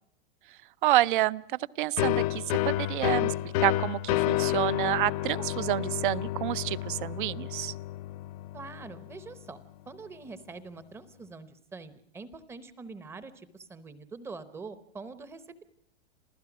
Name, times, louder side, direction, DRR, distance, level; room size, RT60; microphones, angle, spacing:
voice 1, 0.5-3.3 3.6-7.7, right 16 dB, 50° right, 19 dB, 0.7 m, -29 dB
sound 1, 2.0-9.4, left 16 dB, 35° left, 0.8 m, -30 dB
voice 2, 8.5-9.6 9.9-15.4, right 4 dB, 10° right, 13 dB, 0.8 m, -44 dB
28.0 x 15.5 x 6.0 m, 0.72 s
supercardioid pair, 175°, 32 cm